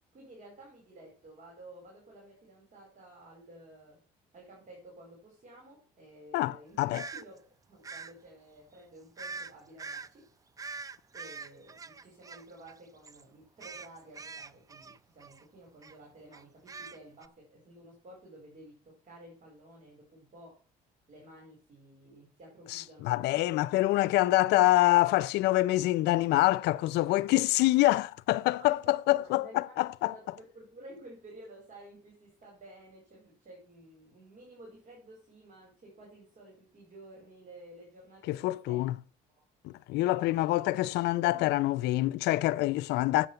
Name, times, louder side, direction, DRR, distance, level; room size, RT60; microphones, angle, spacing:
voice 1, 0.1-4.0 4.3-7.4 7.7-10.3 11.1-20.6 21.1-23.7 28.6-28.8 29.1-38.9 39.3-39.4 39.9-40.9 41.3-41.6, right 1 dB, 50° right, 4.6 m, -53 dB
voice 2, 6.3-7.0 22.7-30.1 38.3-38.9 39.6-43.3, left 17 dB, 85° left, 0.5 m, -26 dB
sound 1, 6.9-7.2 7.8-8.1 9.2-9.5 9.8-10.1 10.6-12.8 13.0-13.2 13.6-15.4 15.8-16.0 16.3-17.3, right 4 dB, 20° right, 0.4 m, -43 dB
8.3 x 6.9 x 7.0 m
cardioid pair, 110°, 17 cm